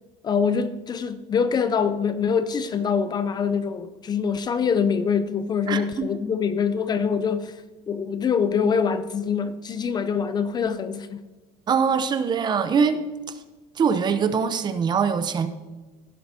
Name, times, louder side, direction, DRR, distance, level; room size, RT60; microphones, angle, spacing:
voice 1, 0.2-7.6 7.9-11.2, left 6 dB, 25° left, 12 dB, 0.5 m, -24 dB
voice 2, 5.7-6.1 11.7-13.0 13.8-15.5, right 6 dB, 30° right, 10 dB, 0.7 m, -23 dB
16.0 x 7.7 x 2.8 m, 1.2 s
cardioid pair, 140°, 16 cm